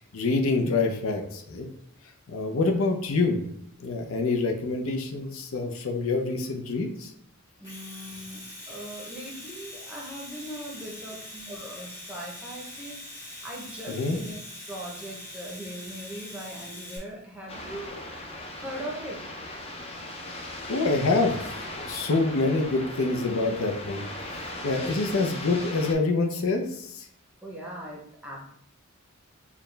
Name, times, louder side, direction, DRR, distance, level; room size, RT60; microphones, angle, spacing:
voice 1, 0.1-1.7 2.3-3.4 3.8-7.1 13.9-14.2 20.7-24.0 24.3-27.1, left 3 dB, 75° left, 3 dB, 0.6 m, -26 dB
Domestic sounds home sounds, 7.6-17.0, left 1 dB, 10° left, 1.1 m, -43 dB
voice 2, 7.6-14.4 14.7-18.0 18.6-19.2 27.4-28.4, right 1 dB, 5° right, -3 dB, 0.7 m, -40 dB
sound 1, 17.5-25.9, left 1 dB, 30° left, 0.5 m, -38 dB
4.7 x 2.2 x 3.2 m, 0.70 s
head